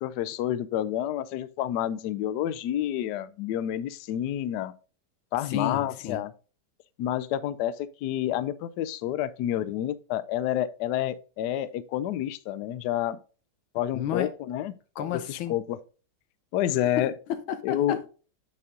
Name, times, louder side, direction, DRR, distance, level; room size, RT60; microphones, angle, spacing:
voice 1, 0.0-4.7 5.3-6.3 7.0-13.2 13.7-14.7 15.3-15.8 16.5-17.1 17.6-18.0, left 12 dB, 90° left, 0.9 m, -29 dB
voice 2, 5.4-6.2 13.9-14.3 14.9-15.6 17.0-18.1, left 9 dB, 75° left, 1.6 m, -32 dB
8.6 x 4.5 x 3.7 m
omnidirectional pair, 2.3 m